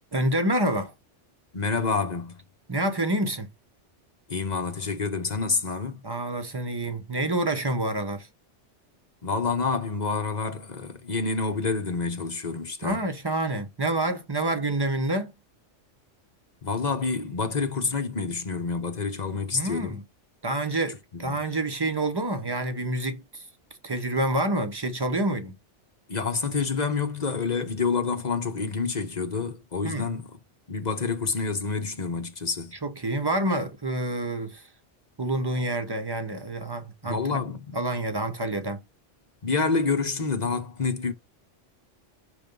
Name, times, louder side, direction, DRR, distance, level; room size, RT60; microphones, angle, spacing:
voice 1, 0.1-0.9 2.7-3.5 6.0-8.3 12.8-15.3 19.5-20.0 20.4-23.4 23.8-25.5 29.8-30.1 32.8-34.7 35.2-37.4 37.7-38.8, right 1 dB, 20° right, 0.9 m, -28 dB
voice 2, 1.5-2.4 4.3-6.0 9.2-13.0 16.6-19.9 21.2-21.4 26.1-30.4 30.7-32.7 37.0-37.8 39.4-41.1, left 4 dB, 40° left, 0.9 m, -28 dB
6.6 x 3.4 x 5.2 m
omnidirectional pair, 1.2 m